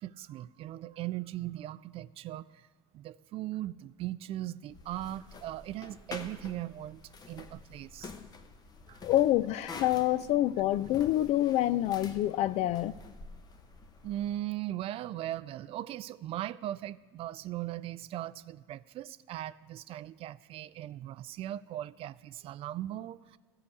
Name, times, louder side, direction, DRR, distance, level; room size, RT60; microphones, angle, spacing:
voice 1, 0.0-2.7 2.9-7.0 7.3-8.1 8.9-9.0 14.0-23.4, right 13 dB, 45° right, 0.3 m, -39 dB
sound 1, 4.7-14.4, left 4 dB, 30° left, 0.9 m, -48 dB
voice 2, 9.0-12.9, left 14 dB, 50° left, 0.4 m, -27 dB
13.0 x 4.9 x 8.2 m
supercardioid pair, 95°, 14 cm